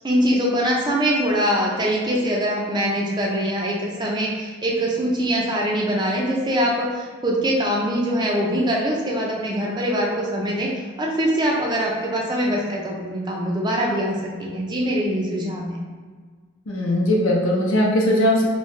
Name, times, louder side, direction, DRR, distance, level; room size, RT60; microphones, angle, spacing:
voice 1, 0.0-10.7 11.0-15.8, equal, 20° right, -2 dB, 0.4 m, -23 dB
voice 2, 16.7-18.5, left 1 dB, 65° left, -2 dB, 0.7 m, -19 dB
3.1 x 2.7 x 3.1 m, 1.5 s
head